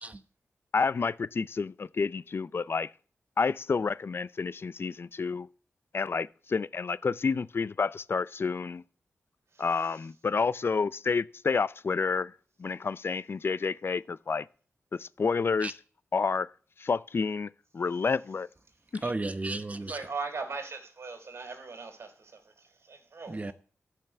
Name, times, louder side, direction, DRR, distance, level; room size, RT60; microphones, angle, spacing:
voice 1, 0.7-2.9 3.4-5.5 5.9-8.8 9.6-14.5 14.9-15.7 16.1-16.5 16.8-18.5 18.9-19.0, left 5 dB, 50° left, 0.5 m, -29 dB
voice 2, 19.0-20.0 23.3-23.5, right 2 dB, 30° right, 1.1 m, -33 dB
voice 3, 19.9-23.5, right 4 dB, 60° right, 3.1 m, -39 dB
12.0 x 5.8 x 6.8 m
cardioid pair, 60°, 5 cm